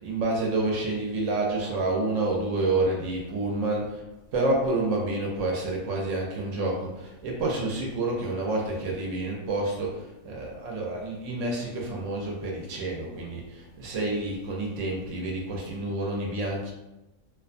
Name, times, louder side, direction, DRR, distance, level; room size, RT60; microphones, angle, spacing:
voice 1, 0.0-4.0 4.3-16.7, right 2 dB, 70° right, -1 dB, 0.9 m, -29 dB
2.5 x 2.2 x 2.5 m, 0.98 s
omnidirectional pair, 1.5 m